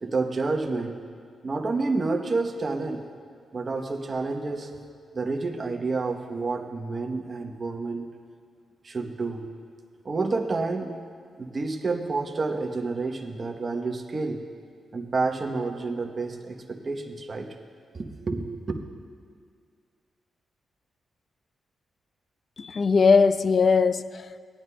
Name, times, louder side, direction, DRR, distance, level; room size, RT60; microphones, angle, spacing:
voice 1, 0.0-1.0 1.4-3.0 3.5-4.7 5.1-8.1 8.8-9.5 10.0-10.9 11.4-14.4 14.9-17.5 17.9-18.8, right 3 dB, 40° right, 0.9 m, -29 dB
voice 2, 22.6-24.4, left 5 dB, 45° left, 0.3 m, -20 dB
18.0 x 11.0 x 2.2 m
cardioid pair, 100°, 0 cm